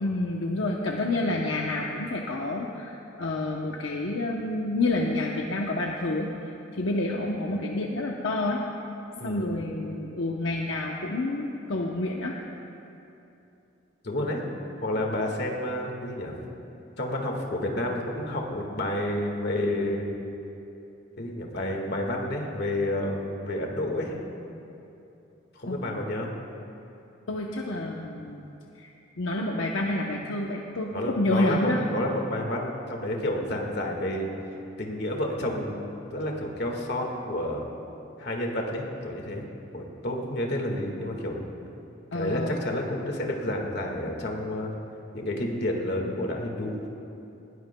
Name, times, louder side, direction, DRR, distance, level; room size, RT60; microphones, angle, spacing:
voice 1, 0.0-8.6 9.2-12.4 25.7-25.8 27.3-31.8 42.1-42.7, left 2 dB, 75° left, -1 dB, 0.8 m, -29 dB
voice 2, 9.2-9.5 14.0-14.4 14.8-16.3 17.0-20.1 21.2-24.1 25.5-26.3 30.9-34.3 34.8-37.6 38.2-39.4 39.7-41.4 42.1-44.7 45.1-46.7, left 1 dB, 55° left, 1 dB, 1.7 m, -30 dB
19.5 x 18.0 x 2.3 m, 2.9 s
head